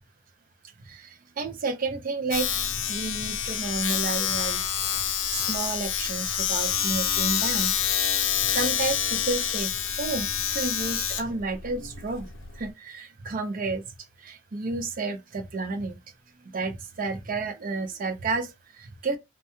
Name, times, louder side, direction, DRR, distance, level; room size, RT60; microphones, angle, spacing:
voice 1, 0.9-4.6 5.0-7.7 8.2-12.3 12.5-13.8 14.2-16.0 16.4-19.2, right 3 dB, 45° right, 0.4 m, -31 dB
Domestic sounds home sounds, 2.3-12.7, left 8 dB, 70° left, 0.5 m, -27 dB
2.2 x 2.1 x 2.9 m
head